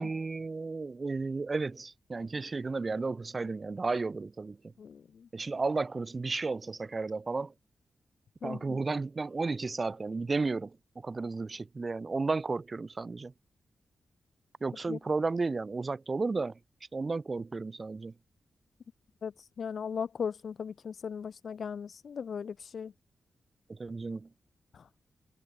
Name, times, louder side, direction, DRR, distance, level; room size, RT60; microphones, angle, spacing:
voice 1, 0.0-4.6 5.3-7.5 8.4-13.3 14.6-16.6 16.9-18.1 23.7-24.3, right 3 dB, 30° right, 6.6 m, -33 dB
voice 2, 4.8-5.3 8.4-8.8 14.9-15.0 19.2-19.3 19.6-22.9, left 6 dB, 60° left, 5.0 m, -37 dB
wide cardioid pair, 125°, 0 cm